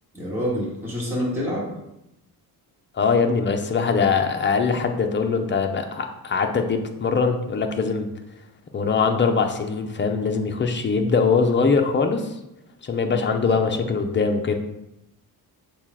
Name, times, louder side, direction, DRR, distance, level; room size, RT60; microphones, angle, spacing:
voice 1, 0.1-1.7 13.4-13.6, equal, 5° right, -6 dB, 1.8 m, -27 dB
voice 2, 3.0-8.1 8.7-12.3 12.8-14.5, left 5 dB, 30° left, 5 dB, 0.7 m, -22 dB
6.9 x 2.4 x 5.6 m, 0.87 s
cardioid pair, 130°, 38 cm